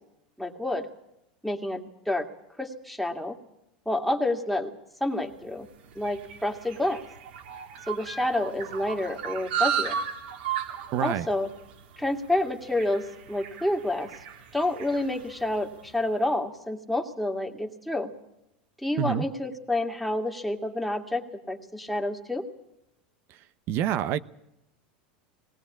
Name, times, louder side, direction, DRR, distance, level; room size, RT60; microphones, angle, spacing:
voice 1, 0.4-0.9 1.4-2.3 2.6-3.4 3.9-4.7 5.0-5.7 6.0-7.0 7.9-10.0 11.0-11.5 12.0-14.1 14.5-18.1 18.8-22.4, left 1 dB, ahead, 2.2 m, -29 dB
sound 1, 5.3-15.9, right 8 dB, 85° right, 3.1 m, -35 dB
voice 2, 10.9-11.3 19.0-19.2 23.7-24.2, right 10 dB, 50° right, 0.8 m, -26 dB
19.0 x 18.0 x 8.5 m
supercardioid pair, 115°, 5 cm